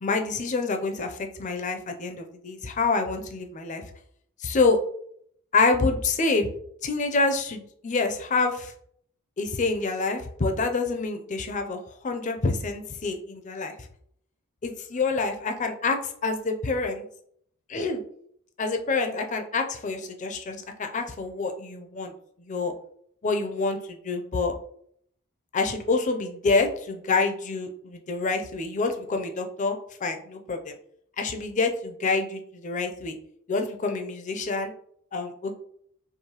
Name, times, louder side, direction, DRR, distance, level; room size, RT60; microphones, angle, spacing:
voice 1, 0.0-3.8 4.4-4.8 5.5-6.5 6.8-8.7 9.4-11.8 12.0-13.7 14.6-17.0 17.7-18.0 18.6-22.1 22.4-22.7 23.2-24.5 25.5-30.7 31.2-33.2 33.5-34.7 35.1-35.5, left 3 dB, 35° left, 6 dB, 0.4 m, -27 dB
4.7 x 3.0 x 2.9 m, 0.67 s
head